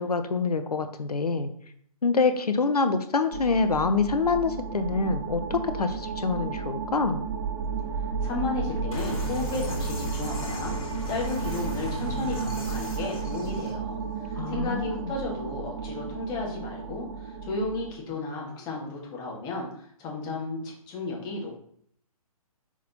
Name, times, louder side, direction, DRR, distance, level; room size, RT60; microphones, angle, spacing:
voice 1, 0.0-1.5 2.0-7.2 14.4-15.1, left 4 dB, 85° left, 9 dB, 0.9 m, -26 dB
sound 1, 3.3-17.9, right 5 dB, 40° right, 1.0 m, -33 dB
voice 2, 8.2-21.6, left 3 dB, 20° left, -2 dB, 1.9 m, -34 dB
sound 2, 8.9-13.7, left 1 dB, 65° left, 2.7 m, -37 dB
6.1 x 4.1 x 4.1 m, 0.64 s
hypercardioid pair, 135°, 19 cm